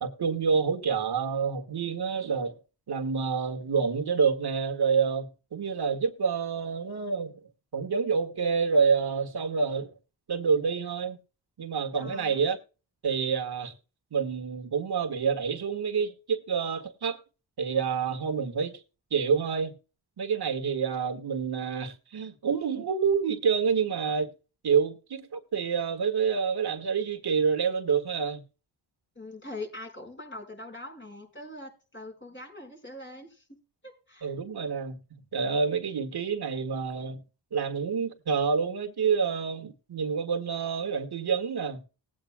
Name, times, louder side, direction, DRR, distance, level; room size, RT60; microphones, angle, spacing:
voice 1, 0.0-2.6 2.9-7.5 7.7-9.9 10.3-11.2 11.6-12.6 13.0-13.7 14.1-17.2 17.6-18.8 19.1-19.7 20.2-24.3 24.6-28.4 34.2-37.2 37.5-41.8, right 6 dB, 55° right, 1.8 m, -28 dB
voice 2, 12.0-12.4 29.1-33.5 33.8-34.3, left 2 dB, 25° left, 5.1 m, -42 dB
19.5 x 8.7 x 2.2 m
cardioid pair, 75°, 46 cm